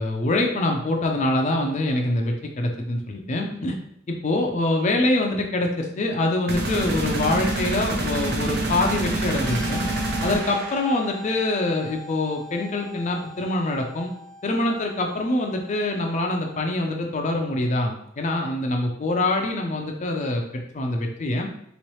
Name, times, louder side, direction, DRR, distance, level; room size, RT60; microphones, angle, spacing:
voice 1, 0.0-3.8 4.1-9.8 10.2-14.1 14.4-21.5, left 2 dB, 40° left, 2 dB, 0.4 m, -25 dB
sound 1, 6.5-11.2, right 2 dB, 60° right, 0.6 m, -27 dB
sound 2, 9.3-16.8, left 1 dB, 90° left, 1.0 m, -42 dB
3.1 x 3.0 x 3.0 m, 0.71 s
head